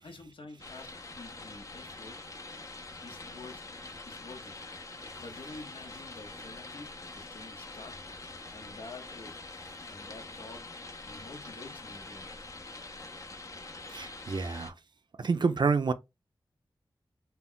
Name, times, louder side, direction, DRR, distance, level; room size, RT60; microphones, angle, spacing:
voice 1, 0.0-2.2 3.0-3.7 4.0-4.6 5.2-8.0 8.5-9.4 9.7-10.7 11.0-12.3, left 3 dB, 75° left, 0.7 m, -48 dB
sound 1, 0.6-14.7, left 3 dB, 40° left, 0.5 m, -45 dB
voice 2, 13.9-14.7 15.2-15.9, right 4 dB, 55° right, 0.4 m, -28 dB
2.1 x 2.1 x 3.7 m
cardioid pair, 50°, 9 cm